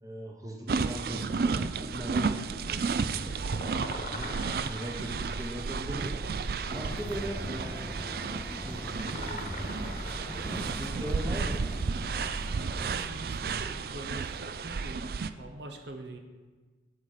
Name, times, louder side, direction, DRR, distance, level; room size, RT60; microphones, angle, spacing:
voice 1, 0.0-3.2 3.9-4.3 4.7-6.1 6.6-8.0 8.5-10.1 10.5-11.6, right 1 dB, 20° right, 1 dB, 1.0 m, -40 dB
sound 1, 0.7-15.3, right 5 dB, 55° right, 0.4 m, -33 dB
sound 2, 2.9-11.0, left 3 dB, 40° left, 1.1 m, -44 dB
sound 3, 6.7-13.1, left 1 dB, 10° left, 0.5 m, -41 dB
voice 2, 12.5-15.0 15.4-16.2, right 1 dB, 80° right, 5 dB, 1.0 m, -44 dB
9.6 x 7.4 x 5.0 m, 1.3 s
head